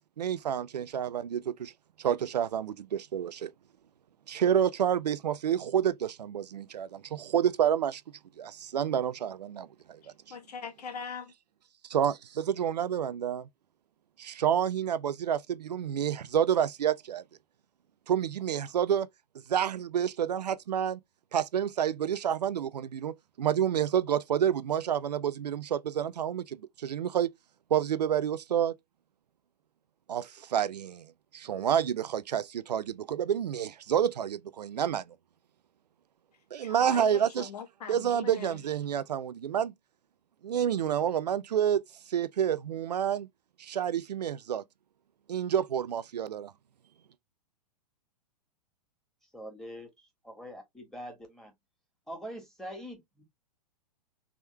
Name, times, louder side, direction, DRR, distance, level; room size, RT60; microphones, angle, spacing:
voice 1, 0.2-1.7 2.0-3.5 4.3-8.0 8.4-10.0 10.3-10.4 11.9-13.5 14.2-17.2 18.1-19.1 19.5-21.0 21.3-27.3 27.7-28.8 30.1-31.1 31.3-35.0 36.5-37.5 37.9-39.7 40.4-41.8 42.1-43.3 43.6-44.6 45.3-46.5, right 9 dB, 80° right, 0.5 m, -29 dB
voice 2, 10.0-11.3 36.6-38.6, left 6 dB, 70° left, 1.3 m, -41 dB
voice 3, 49.3-49.9 50.2-51.5 52.1-53.2, equal, ahead, 1.8 m, -43 dB
3.6 x 3.1 x 3.3 m
hypercardioid pair, 115°, 21 cm